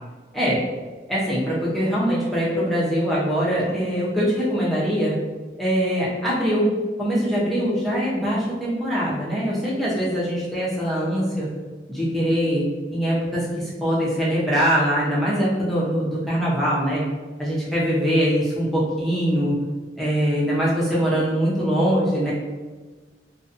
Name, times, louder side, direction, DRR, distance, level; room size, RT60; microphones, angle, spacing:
voice 1, 1.1-5.2 5.6-6.7 7.0-11.5 11.9-17.1 17.4-19.6 20.0-22.3, equal, ahead, -7 dB, 0.5 m, -22 dB
2.5 x 2.2 x 2.4 m, 1.3 s
head